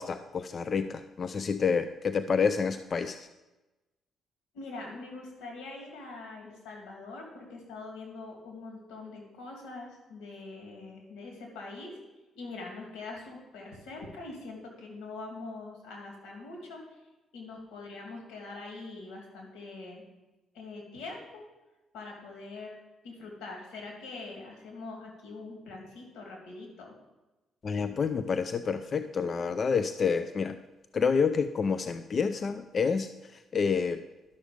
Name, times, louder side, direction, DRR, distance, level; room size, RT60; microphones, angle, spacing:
voice 1, 0.0-3.2 27.6-30.6 30.9-33.1 33.5-34.0, left 5 dB, 45° left, 10 dB, 0.4 m, -28 dB
voice 2, 4.5-12.0 12.3-16.8 17.3-20.0 20.5-21.5 21.9-22.8 23.0-26.9, left 3 dB, 90° left, 0 dB, 2.6 m, -43 dB
12.0 x 6.5 x 5.1 m, 1.1 s
cardioid pair, 90°, 0 cm